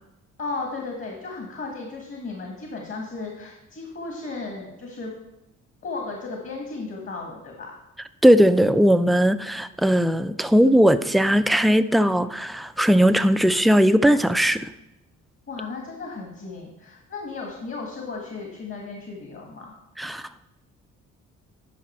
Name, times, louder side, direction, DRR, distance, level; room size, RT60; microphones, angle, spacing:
voice 1, 0.4-5.1 5.8-7.7 15.5-19.7, left 3 dB, 45° left, 1 dB, 1.7 m, -35 dB
voice 2, 8.2-14.7 20.0-20.5, equal, ahead, 11 dB, 0.3 m, -18 dB
11.0 x 5.1 x 4.4 m, 0.92 s
cardioid pair, 90°, 30 cm